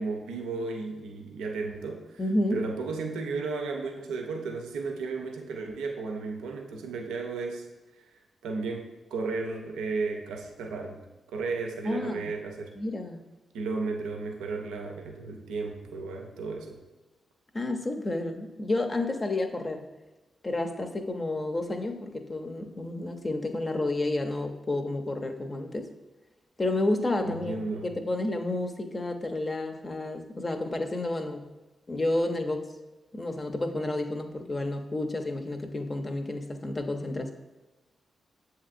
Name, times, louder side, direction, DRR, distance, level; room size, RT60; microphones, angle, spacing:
voice 1, 0.0-2.2 2.5-7.7 8.4-11.0 11.3-12.8 13.5-16.8 27.2-27.9, right 4 dB, 85° right, 3 dB, 0.4 m, -34 dB
voice 2, 2.2-2.6 11.9-12.3 12.8-13.2 17.5-19.9 20.4-25.9 26.6-31.4 31.9-32.7 33.1-37.3, left 2 dB, 40° left, 5 dB, 0.6 m, -30 dB
7.1 x 2.8 x 2.5 m, 1.1 s
supercardioid pair, 40°, 0 cm